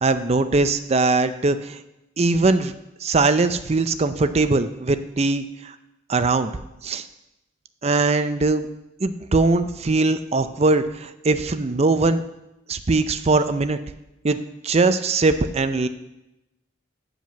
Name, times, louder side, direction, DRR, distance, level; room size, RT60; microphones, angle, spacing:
voice 1, 0.0-1.8 2.2-2.7 3.0-5.7 6.1-6.5 6.8-7.0 7.8-8.7 9.0-12.2 12.7-13.8 14.2-14.4 14.6-15.9, right 3 dB, 35° right, 10 dB, 0.5 m, -21 dB
9.2 x 5.1 x 6.9 m, 0.92 s
head